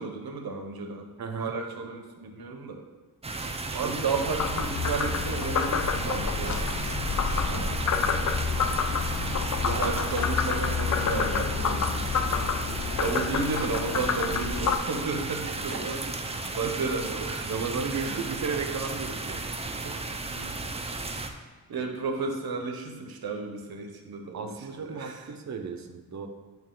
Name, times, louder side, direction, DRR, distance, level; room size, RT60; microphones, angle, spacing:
voice 1, 0.0-1.1 1.4-2.8 3.7-6.6 9.8-12.0 12.7-16.0 16.3-17.5 17.9-18.2 20.2-20.6 21.7-24.5 24.9-25.2, right 4 dB, 75° right, 4 dB, 0.9 m, -33 dB
voice 2, 1.2-1.5 3.7-4.0 7.4-7.8 9.6-10.3 15.2-16.7 17.4-20.2 24.3-26.3, right 5 dB, 50° right, 6 dB, 0.7 m, -35 dB
sound 1, 3.2-21.3, right 3 dB, 15° right, 0.4 m, -34 dB
Frog, 4.1-14.8, left 6 dB, 50° left, 0.5 m, -28 dB
8.9 x 3.0 x 3.7 m, 1.4 s
wide cardioid pair, 100°, 37 cm